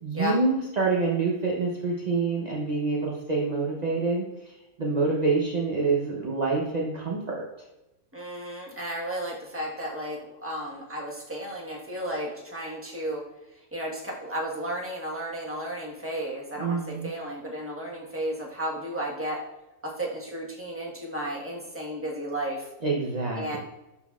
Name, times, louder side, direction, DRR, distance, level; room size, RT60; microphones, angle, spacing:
voice 1, 0.0-4.5 4.8-7.5 16.6-17.1 22.8-23.6, right 3 dB, 40° right, -3 dB, 0.6 m, -26 dB
voice 2, 8.1-13.2 13.7-19.4 19.8-22.7 23.3-23.6, right 1 dB, 10° right, -3 dB, 1.1 m, -33 dB
11.5 x 3.9 x 2.4 m, 0.98 s
omnidirectional pair, 1.7 m